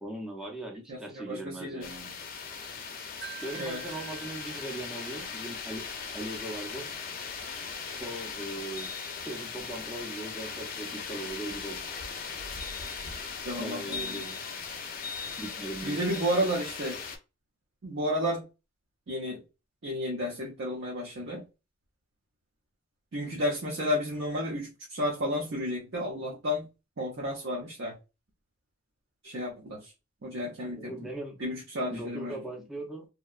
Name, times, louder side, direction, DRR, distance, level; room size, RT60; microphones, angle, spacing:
voice 1, 0.0-2.2 3.4-5.8 6.1-6.9 8.0-8.9 9.2-11.8 13.6-14.4 15.4-16.6 30.8-31.4 31.9-33.0, right 1 dB, ahead, 0.6 m, -39 dB
voice 2, 0.9-1.9 3.5-3.8 13.4-14.2 15.8-17.0 17.8-18.4 19.1-19.4 19.8-21.4 23.1-26.7 27.0-28.0 29.2-29.9 30.2-31.1 31.4-32.4, equal, 60° right, 0.6 m, -32 dB
sound 1, 1.8-17.2, left 5 dB, 45° left, 0.5 m, -39 dB
Wind chime, 3.2-6.3, right 12 dB, 80° right, 1.1 m, -48 dB
2.7 x 2.1 x 2.3 m
head